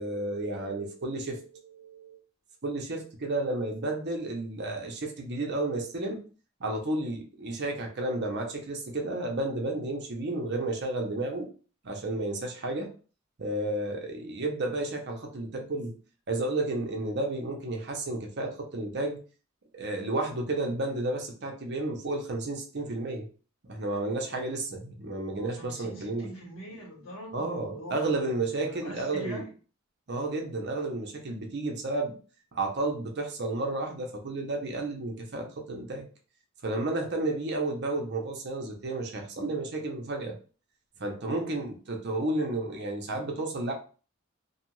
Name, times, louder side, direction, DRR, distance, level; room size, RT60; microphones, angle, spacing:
voice 1, 0.0-2.2 2.6-6.2 6.6-11.5 11.8-12.9 13.4-16.0 16.3-19.2 19.7-23.3 23.7-26.3 27.3-29.4 30.1-32.2 32.5-36.1 36.6-40.3 41.0-43.7, right 2 dB, 55° right, 2 dB, 0.7 m, -32 dB
voice 2, 25.3-29.5, equal, 80° left, -3 dB, 1.4 m, -44 dB
2.6 x 2.4 x 3.0 m, 0.37 s
head